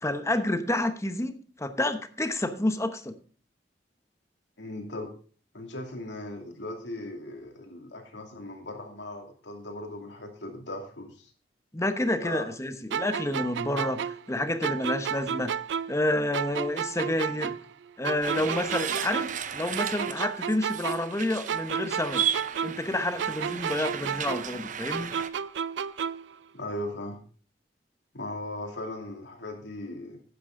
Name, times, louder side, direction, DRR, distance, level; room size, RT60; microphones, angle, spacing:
voice 1, 0.0-3.1 11.7-15.5 15.9-17.6 18.0-22.3 22.6-25.1, left 1 dB, 15° left, 9 dB, 0.9 m, -29 dB
voice 2, 4.6-5.1 5.5-11.3 12.2-12.4 26.5-27.2 28.1-30.2, left 1 dB, 90° left, 2 dB, 2.7 m, -38 dB
sound 1, 12.9-16.1 16.3-19.5 19.8-22.9 23.2-26.3, right 7 dB, 90° right, 0.4 m, -32 dB
sound 2, 18.2-25.3, right 8 dB, 45° right, 0.7 m, -35 dB
11.5 x 9.4 x 3.8 m, 0.40 s
head